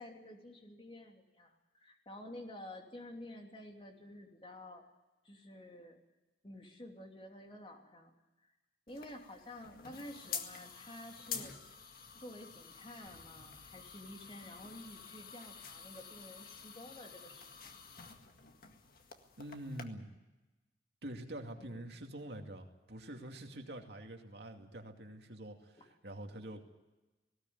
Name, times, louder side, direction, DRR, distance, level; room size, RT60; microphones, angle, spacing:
voice 1, 0.0-4.8 5.2-6.0 6.4-8.1 8.9-11.5 12.2-17.5 21.6-21.9 25.8-25.9, left 1 dB, 30° left, 2 dB, 2.9 m, -51 dB
sound 1, 8.9-19.8, left 7 dB, 55° left, 1.9 m, -49 dB
sound 2, 13.1-15.6, equal, 40° right, 5.2 m, -65 dB
voice 2, 19.4-20.1 21.0-26.6, right 1 dB, 65° right, 3 dB, 2.5 m, -46 dB
19.0 x 18.0 x 9.5 m, 1.1 s
head